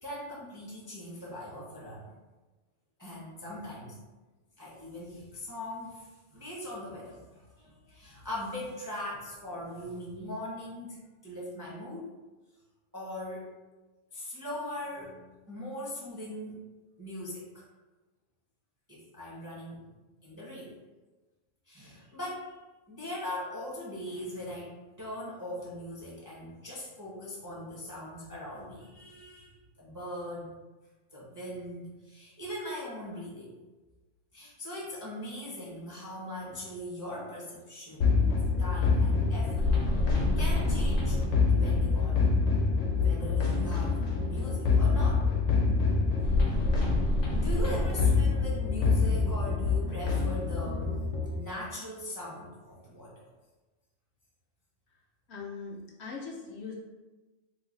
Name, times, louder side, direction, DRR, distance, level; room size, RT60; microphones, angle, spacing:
voice 1, 0.0-2.1 3.0-4.0 4.6-12.1 12.9-13.5 14.1-16.6 17.0-17.7 18.9-20.0 20.2-20.7 21.7-22.5 22.9-30.5 31.1-33.6 34.3-39.7 40.1-42.3 43.0-45.2 47.3-51.0 51.4-53.3, left 1 dB, 20° right, -6 dB, 0.5 m, -40 dB
sound 1, 38.0-51.3, left 4 dB, 85° left, 1.0 m, -26 dB
voice 2, 55.3-56.7, left 4 dB, 65° left, -2 dB, 0.8 m, -40 dB
3.1 x 2.2 x 3.8 m, 1.2 s
omnidirectional pair, 1.3 m